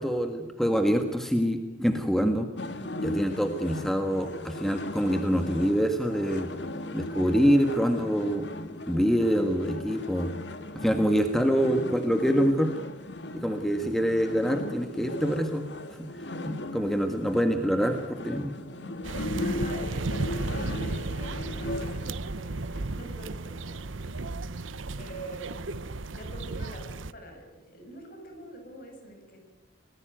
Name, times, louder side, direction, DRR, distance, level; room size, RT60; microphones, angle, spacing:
voice 1, 0.0-2.5 3.0-6.5 6.9-8.5 8.9-10.3 10.7-12.7 13.3-15.6 16.4-18.5, equal, ahead, 5 dB, 1.4 m, -25 dB
sound 1, 2.6-22.1, left 1 dB, 60° left, 1.9 m, -37 dB
sound 2, 19.0-27.1, right 3 dB, 85° right, 0.9 m, -34 dB
voice 2, 19.4-24.3 25.0-25.8 26.1-29.4, right 1 dB, 45° left, 4 dB, 6.6 m, -45 dB
25.0 x 19.0 x 9.1 m, 1.1 s
head